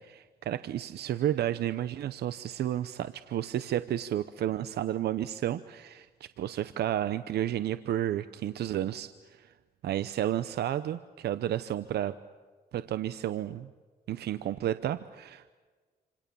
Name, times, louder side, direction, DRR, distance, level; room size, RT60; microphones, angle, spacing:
voice 1, 0.0-9.5 9.8-12.2 12.7-13.7 14.1-15.5, right 11 dB, 90° right, 13 dB, 0.8 m, -32 dB
28.0 x 27.0 x 7.0 m, 1.4 s
cardioid pair, 135°, 16 cm